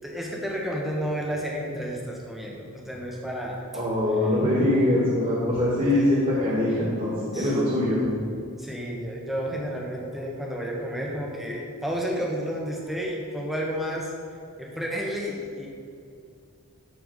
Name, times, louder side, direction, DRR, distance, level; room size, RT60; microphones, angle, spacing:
voice 1, 0.0-3.6 5.9-6.1 7.3-7.5 8.6-14.1 14.6-15.7, equal, ahead, -2 dB, 1.4 m, -31 dB
voice 2, 3.7-8.1, left 1 dB, 35° right, -9 dB, 2.2 m, -23 dB
12.5 x 4.6 x 5.6 m, 2.4 s
head